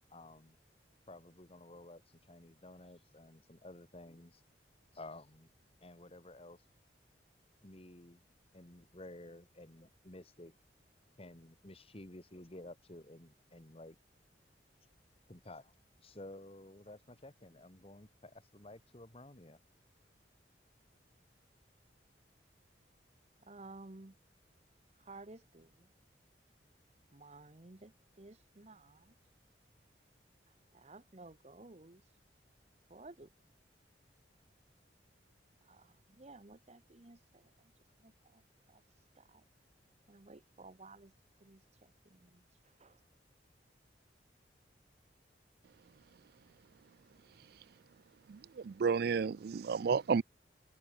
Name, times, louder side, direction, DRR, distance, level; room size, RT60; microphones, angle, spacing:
voice 1, 0.1-0.6 1.1-4.4 4.9-5.5 5.8-6.6 7.6-8.2 8.5-10.6 11.2-14.0 15.3-15.7 16.0-19.6, left 1 dB, 35° left, 2.0 m, -53 dB
voice 2, 23.4-24.2 25.0-25.9 27.1-29.1 30.7-32.0 32.9-33.3 35.6-37.7 38.0-38.4 38.7-38.8 39.2-39.4 40.1-41.1 41.4-43.0, right 2 dB, 40° right, 1.1 m, -55 dB
voice 3, 48.3-50.2, right 5 dB, 60° right, 0.4 m, -32 dB
head